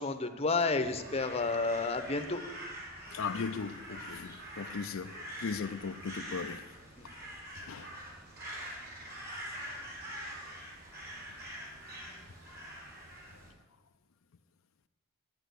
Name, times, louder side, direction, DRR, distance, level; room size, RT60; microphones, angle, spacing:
voice 1, 0.0-2.4 6.4-6.5 7.0-7.1, left 3 dB, 30° left, 8 dB, 0.9 m, -31 dB
Crow, 0.8-13.5, equal, 50° right, 4.1 m, -45 dB
voice 2, 3.1-6.8 7.5-8.0, left 5 dB, 70° left, 8 dB, 0.5 m, -38 dB
10.5 x 8.9 x 8.2 m, 1.1 s
head